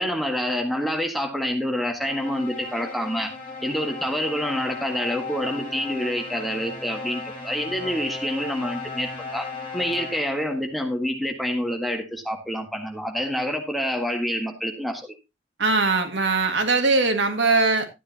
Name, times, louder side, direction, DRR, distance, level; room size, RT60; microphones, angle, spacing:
voice 1, 0.0-3.3 3.6-9.5 9.7-15.1, equal, ahead, 3 dB, 1.7 m, -27 dB
sound 1, 2.0-10.6, left 4 dB, 25° left, 4.1 m, -37 dB
voice 2, 15.6-17.9, right 3 dB, 85° right, 6 dB, 2.0 m, -21 dB
12.5 x 10.0 x 2.9 m, 0.23 s
head